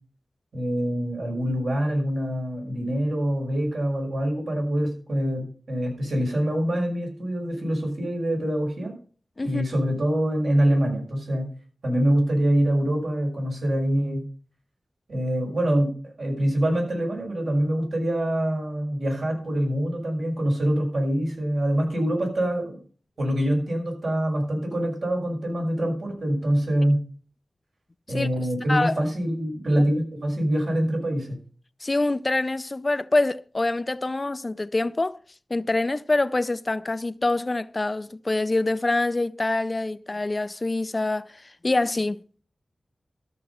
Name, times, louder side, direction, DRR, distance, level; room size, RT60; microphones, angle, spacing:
voice 1, 0.5-8.9 9.4-11.5 11.8-14.2 15.1-22.8 23.2-27.0 28.1-31.4, right 1 dB, 75° right, 5.8 m, -25 dB
voice 2, 28.7-29.0 31.8-35.2 35.5-42.2, left 2 dB, 35° left, 0.5 m, -25 dB
13.5 x 6.5 x 5.7 m
wide cardioid pair, 65°, 0 cm